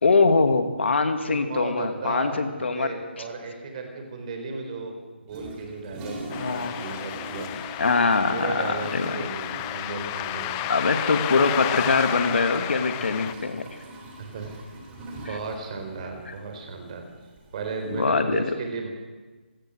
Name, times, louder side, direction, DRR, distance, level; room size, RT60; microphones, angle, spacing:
voice 1, 0.0-2.9 6.4-6.8 7.8-9.1 10.7-13.6 17.9-18.4, left 4 dB, 70° left, 8 dB, 2.3 m, -23 dB
voice 2, 1.3-5.0 5.2-7.6 8.3-10.6 13.0-13.1 14.2-14.6 15.2-17.0 17.5-18.9, right 3 dB, 35° right, 4 dB, 4.0 m, -35 dB
Toilet flush, 5.3-18.1, right 1 dB, 15° right, 3.2 m, -43 dB
sound 1, 6.3-13.3, left 14 dB, 15° left, 0.6 m, -32 dB
26.0 x 17.0 x 6.5 m, 1.3 s
hypercardioid pair, 160°, 6 cm